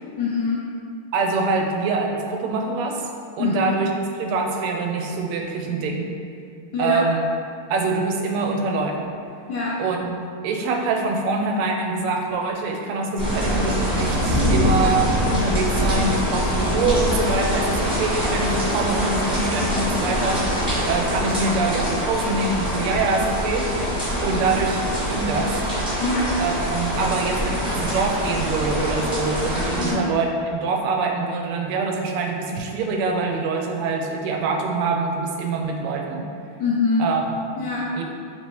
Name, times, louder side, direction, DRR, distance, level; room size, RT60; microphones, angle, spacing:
voice 1, 0.2-0.6 3.4-3.6 6.7-7.0 9.5-9.8 16.8-17.0 26.0-26.3 29.8-30.1 36.6-37.1 37.6-37.8, left 4 dB, 70° left, -6 dB, 1.0 m, -24 dB
voice 2, 1.1-3.1 3.4-3.9 4.1-6.1 6.8-7.2 7.7-9.1 9.8-10.2 10.4-20.4 20.9-23.7 24.2-24.8 25.1-25.6 26.4-36.3 37.0-37.4 37.9-38.0, right 3 dB, 90° right, 2 dB, 1.5 m, -24 dB
sound 1, 13.2-29.9, equal, 5° right, 0.6 m, -24 dB
3.6 x 2.9 x 4.5 m, 2.4 s
omnidirectional pair, 2.4 m